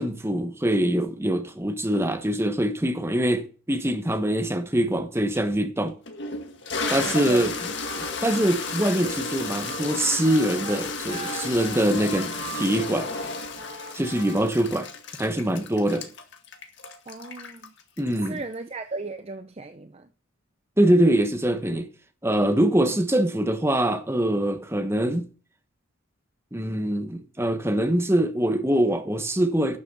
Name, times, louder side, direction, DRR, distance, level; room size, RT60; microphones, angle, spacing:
voice 1, 0.0-6.0 6.9-7.5 8.0-13.1 13.9-14.9 15.2-16.1 18.0-18.4 20.8-21.9 22.2-25.3 26.5-29.8, right 1 dB, 10° right, 1.3 m, -24 dB
Toilet flush, 5.3-5.4 6.1-18.5, left 4 dB, 55° left, 1.9 m, -33 dB
voice 2, 6.8-7.5 17.1-17.7 18.3-20.1 22.8-23.0, right 3 dB, 30° right, 0.7 m, -36 dB
Wind instrument woodwind instrument, 7.7-14.5, right 4 dB, 45° right, 2.1 m, -41 dB
11.5 x 7.1 x 7.1 m
head